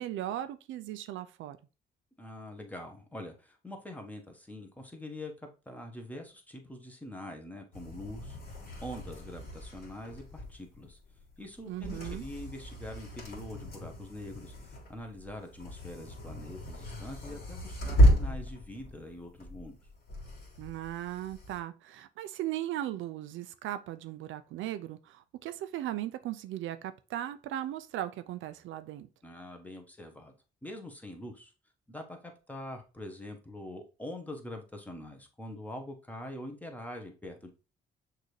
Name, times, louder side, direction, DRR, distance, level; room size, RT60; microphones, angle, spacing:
voice 1, 0.0-1.6 11.7-12.2 20.6-29.1, right 13 dB, 80° right, 0.4 m, -37 dB
voice 2, 2.2-11.0 11.4-19.8 29.2-30.3 30.6-31.5 31.9-37.5, left 1 dB, 10° left, 1.0 m, -44 dB
sound 1, 7.7-21.6, equal, 55° left, 1.9 m, -32 dB
6.4 x 2.7 x 3.1 m
cardioid pair, 90°, 20 cm